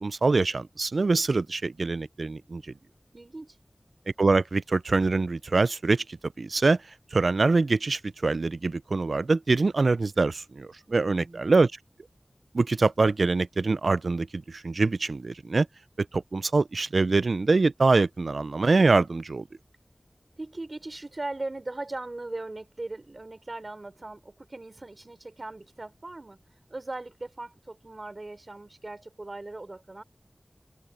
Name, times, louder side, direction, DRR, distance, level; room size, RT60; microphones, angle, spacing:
voice 1, 0.0-2.6 4.2-6.8 7.1-11.7 12.5-15.7 16.1-19.4, right 3 dB, 90° right, 0.4 m, -24 dB
voice 2, 3.1-3.6 10.9-11.5 20.4-26.4 26.7-30.0, right 2 dB, 55° right, 4.6 m, -39 dB
wide cardioid pair, 55°, 0 cm